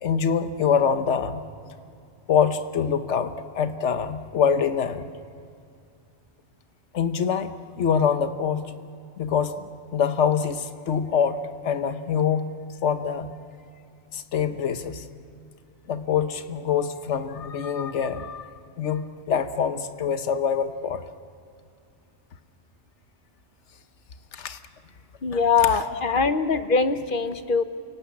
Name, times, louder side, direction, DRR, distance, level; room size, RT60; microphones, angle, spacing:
voice 1, 0.0-1.5 2.3-5.1 6.9-8.7 9.2-9.6 9.9-12.5 12.8-13.3 14.1-15.1 15.9-18.5 18.8-21.0 24.3-24.6 25.3-26.0, left 7 dB, 75° left, 9 dB, 1.3 m, -25 dB
voice 2, 25.2-27.6, left 5 dB, 50° left, 10 dB, 1.0 m, -22 dB
29.5 x 17.5 x 8.6 m, 2.4 s
omnidirectional pair, 1.2 m